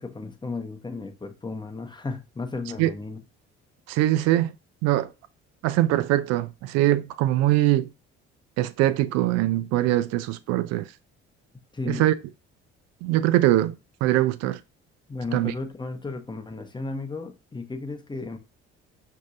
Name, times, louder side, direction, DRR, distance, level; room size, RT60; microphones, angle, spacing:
voice 1, 0.0-3.2 11.7-12.1 15.1-18.4, left 3 dB, 15° left, 0.7 m, -34 dB
voice 2, 3.9-4.5 4.8-5.1 5.6-7.9 8.6-10.8 11.9-12.1 13.0-13.7 14.0-14.6 15.3-15.5, right 15 dB, 50° right, 0.4 m, -22 dB
6.0 x 2.7 x 2.5 m
figure-of-eight pair, 50°, 34 cm